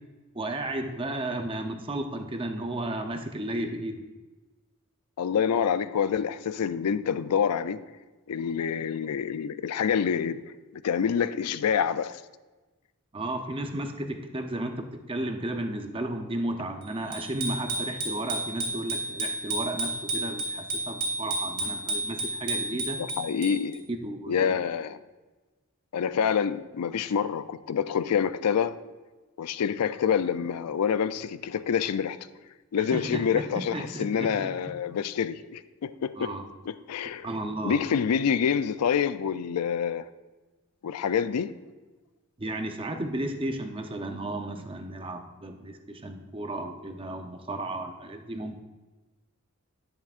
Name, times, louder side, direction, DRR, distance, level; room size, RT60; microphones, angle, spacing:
voice 1, 0.3-4.0 13.1-23.0 24.0-24.6 32.8-34.5 36.2-36.5 37.0-38.0 42.4-48.6, right 1 dB, 25° right, 0.7 m, -34 dB
voice 2, 5.2-7.8 8.3-10.4 10.8-12.2 23.0-23.9 24.3-25.0 25.9-28.8 29.4-32.2 32.7-36.3 36.7-37.3 37.6-40.0 40.8-41.6, left 7 dB, 85° left, 0.4 m, -27 dB
Bicycle bell, 17.1-23.8, right 2 dB, 50° right, 2.4 m, -32 dB
10.5 x 10.0 x 2.5 m
head